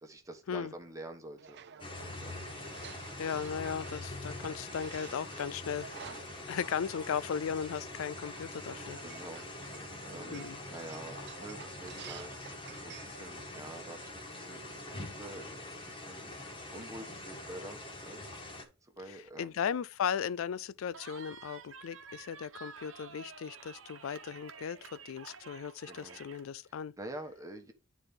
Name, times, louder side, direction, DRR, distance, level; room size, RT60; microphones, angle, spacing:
voice 1, 0.0-2.4 4.4-4.5 9.0-16.4 16.7-18.2 18.8-19.6 25.8-26.2 26.6-27.7, right 1 dB, 15° right, 1.2 m, -48 dB
sound 1, 1.4-14.0, right 7 dB, 55° right, 0.5 m, -52 dB
sound 2, 1.8-18.6, left 2 dB, 25° left, 1.7 m, -44 dB
voice 2, 3.2-6.0 6.4-9.0 10.3-10.6 19.4-26.9, left 7 dB, 85° left, 0.4 m, -36 dB
Cheering, 20.9-26.5, right 5 dB, 75° right, 1.1 m, -50 dB
10.0 x 4.2 x 3.5 m
head